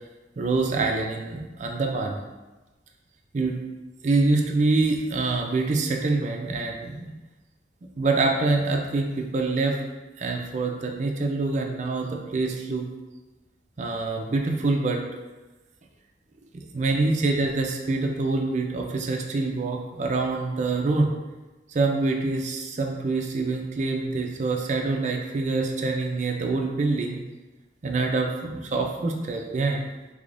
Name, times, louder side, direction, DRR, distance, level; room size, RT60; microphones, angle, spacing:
voice 1, 0.4-2.2 3.3-3.6 4.0-7.1 8.0-9.8 10.2-12.9 13.8-15.0 16.7-21.1 21.7-27.2 27.8-29.8, right 3 dB, 40° right, 1 dB, 0.4 m, -25 dB
3.4 x 3.3 x 2.5 m, 1.2 s
head